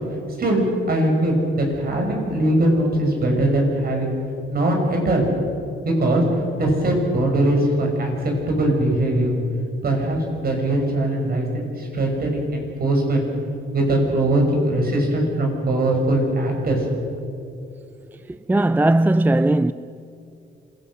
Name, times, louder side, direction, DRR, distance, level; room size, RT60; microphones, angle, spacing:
voice 1, 0.4-4.1 4.5-5.3 5.8-6.2 6.6-8.1 8.5-9.3 9.8-13.2 13.7-16.8, right 1 dB, 50° right, 6.2 m, -21 dB
voice 2, 18.3-19.7, right 1 dB, 10° right, 0.4 m, -18 dB
26.5 x 17.0 x 6.4 m
cardioid pair, 90°, 20 cm